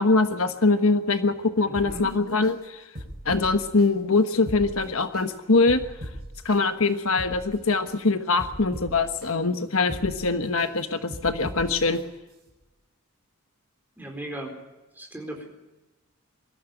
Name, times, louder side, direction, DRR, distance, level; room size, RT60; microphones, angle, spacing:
voice 1, 0.0-2.8 3.2-5.8 6.4-12.0, left 3 dB, 65° left, 8 dB, 1.3 m, -23 dB
voice 2, 1.7-2.1 14.0-14.5 15.0-15.5, right 1 dB, 10° right, 2 dB, 4.2 m, -37 dB
sound 1, 1.7-2.5 3.0-3.9 4.3-5.2 5.7-6.6 7.0-8.0 8.4-9.3 9.8-10.7 11.1-12.0 12.5-12.6, equal, 45° right, 5.2 m, -39 dB
23.5 x 14.0 x 9.2 m, 1.1 s
head